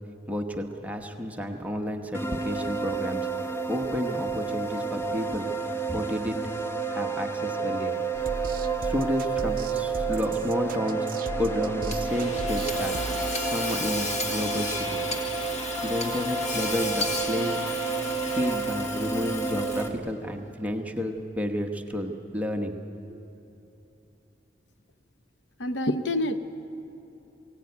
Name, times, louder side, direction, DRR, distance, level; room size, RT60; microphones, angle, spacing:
voice 1, 0.3-5.5 5.9-6.4 6.9-8.0 8.8-11.1 11.4-13.0 13.3-15.0 15.8-17.6 18.2-22.7 23.1-23.2, equal, 10° right, 3 dB, 1.1 m, -31 dB
sound 1, 2.1-19.9, right 4 dB, 15° left, 0.9 m, -30 dB
sound 2, 8.1-13.8, right 3 dB, 50° right, 0.5 m, -37 dB
Hammer / Sawing, 11.9-20.1, left 2 dB, 40° left, 2.0 m, -34 dB
voice 2, 25.6-26.4, left 1 dB, 70° left, 10 dB, 0.9 m, -26 dB
22.5 x 17.5 x 9.5 m, 3.0 s
head